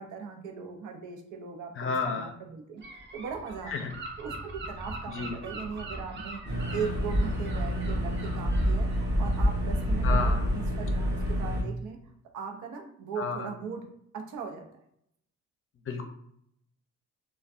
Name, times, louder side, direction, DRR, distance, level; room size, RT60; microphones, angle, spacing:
voice 1, 0.0-3.9 4.2-6.4 6.7-8.9 9.2-12.0 12.3-13.9 14.1-14.7, right 6 dB, 80° right, 3 dB, 0.7 m, -39 dB
voice 2, 1.8-2.3 3.7-3.9 5.1-5.4 10.0-10.5 13.2-13.5 15.9-16.0, left 4 dB, 45° left, 5 dB, 0.6 m, -31 dB
Gull seagull / Wind, 2.8-10.1, right 2 dB, 40° right, 0.8 m, -42 dB
sound 1, 6.4-11.6, equal, 15° right, 1.4 m, -27 dB
3.4 x 2.3 x 2.5 m, 0.71 s
cardioid pair, 90°, 30 cm